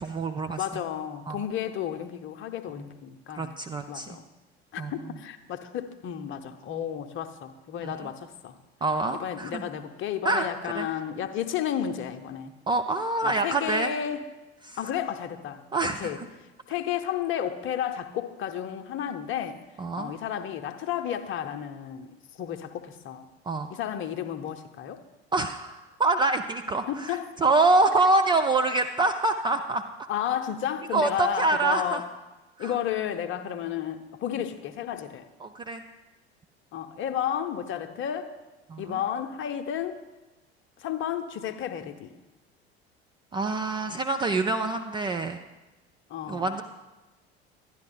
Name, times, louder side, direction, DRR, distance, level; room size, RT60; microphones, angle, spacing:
voice 1, 0.0-0.6 1.3-1.4 3.4-4.1 4.8-4.9 7.8-7.9 8.8-9.6 10.2-10.5 10.8-10.9 12.7-13.9 14.7-14.8 15.7-16.1 19.8-20.1 23.5-23.7 25.3-29.8 30.9-32.0 32.6-32.7 35.4-35.8 38.7-39.0 43.3-45.4 46.3-46.6, right 3 dB, 15° right, 6 dB, 0.3 m, -25 dB
voice 2, 0.6-3.6 3.9-4.2 4.7-8.6 9.2-12.5 13.2-14.3 14.8-16.2 16.7-19.6 19.9-23.3 23.7-25.0 26.9-27.3 30.1-32.1 32.6-35.3 36.7-38.3 38.8-40.0 40.8-42.1 46.1-46.5, left 9 dB, 35° left, 8 dB, 0.8 m, -32 dB
11.5 x 10.5 x 3.8 m, 1.1 s
figure-of-eight pair, 70°, 33 cm